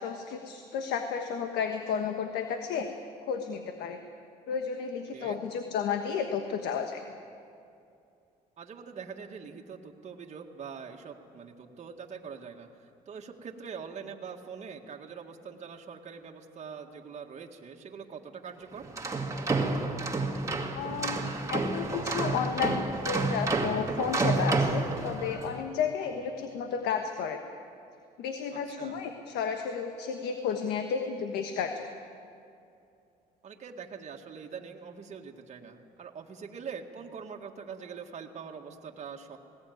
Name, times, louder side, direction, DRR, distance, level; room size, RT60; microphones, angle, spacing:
voice 1, 0.0-2.9 3.2-4.0 4.5-7.0 20.7-21.2 21.5-27.4 28.2-31.9, left 6 dB, 80° left, 6 dB, 1.3 m, -32 dB
voice 2, 8.6-12.7 13.1-18.9 28.5-29.0 33.4-39.4, right 6 dB, 45° right, 2 dB, 1.9 m, -43 dB
sound 1, 18.8-25.5, right 3 dB, 20° right, 2.1 m, -29 dB
19.5 x 18.0 x 9.5 m, 2.5 s
cardioid pair, 110°, 17 cm